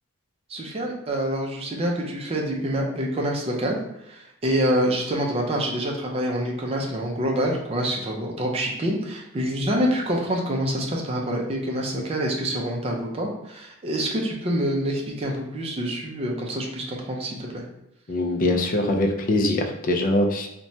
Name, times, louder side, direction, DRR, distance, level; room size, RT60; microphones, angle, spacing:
voice 1, 0.5-3.8 4.1-17.6, equal, 30° right, 0 dB, 0.4 m, -26 dB
voice 2, 18.1-20.5, left 1 dB, 40° left, 4 dB, 0.4 m, -22 dB
2.9 x 2.2 x 2.6 m, 0.85 s
head